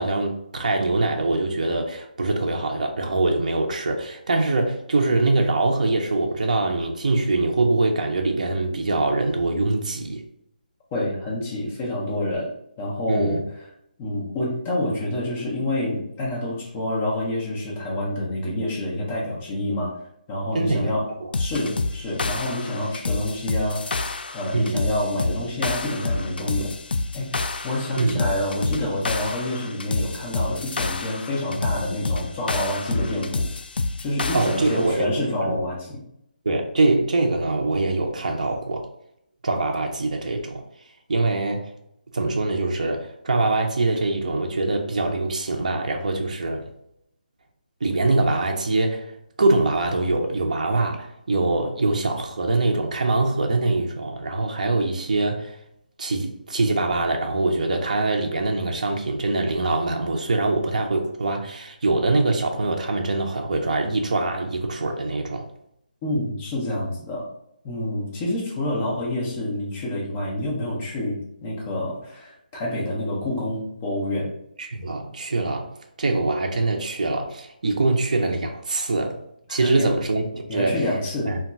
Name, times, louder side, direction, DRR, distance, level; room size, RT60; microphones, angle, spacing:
voice 1, 0.0-10.2 13.1-13.4 20.5-20.9 24.5-24.8 28.0-28.2 34.3-35.6 36.5-38.9 39.4-40.6 41.1-41.7 42.1-46.7 47.8-49.1 49.4-55.6 56.0-65.5 74.6-79.2 79.5-80.8 81.3-81.4, right 2 dB, 50° right, 0.5 m, -23 dB
voice 2, 10.9-12.5 12.8-13.4 14.0-20.0 20.3-21.1 21.4-26.7 27.1-33.4 34.0-36.0 66.0-67.3 67.6-74.3 79.6-79.9 80.5-81.3, left 1 dB, 10° left, 0.4 m, -27 dB
sound 1, 21.3-34.9, left 3 dB, 85° left, 0.3 m, -28 dB
2.3 x 2.2 x 3.8 m
hypercardioid pair, 180°, 5 cm